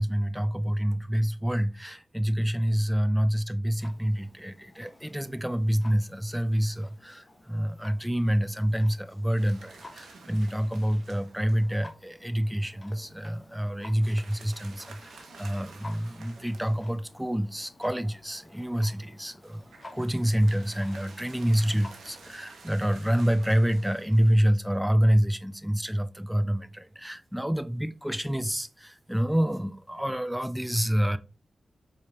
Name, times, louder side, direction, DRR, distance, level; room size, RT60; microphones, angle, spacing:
voice 1, 0.0-19.6 19.9-31.2, equal, 5° right, 0.4 m, -27 dB
Clock, 3.8-22.3, left 2 dB, 30° left, 1.0 m, -52 dB
sound 1, 9.3-11.9 14.0-17.2 19.4-24.8, right 4 dB, 80° right, 0.9 m, -51 dB
4.5 x 3.4 x 2.8 m
cardioid pair, 45°, 0 cm